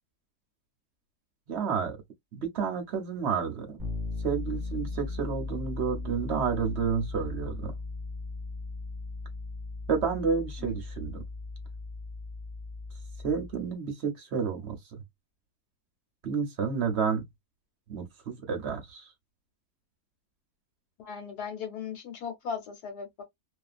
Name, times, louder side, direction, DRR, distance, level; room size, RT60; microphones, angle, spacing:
voice 1, 1.5-2.0 2.3-3.8 4.2-7.7 9.9-11.2 13.2-15.0 16.2-17.3 17.9-19.1, right 6 dB, 55° right, 0.8 m, -30 dB
Bass guitar, 3.8-13.7, left 3 dB, 15° right, 1.0 m, -37 dB
voice 2, 21.0-23.2, left 6 dB, 75° left, 1.3 m, -37 dB
2.6 x 2.4 x 2.4 m
omnidirectional pair, 1.7 m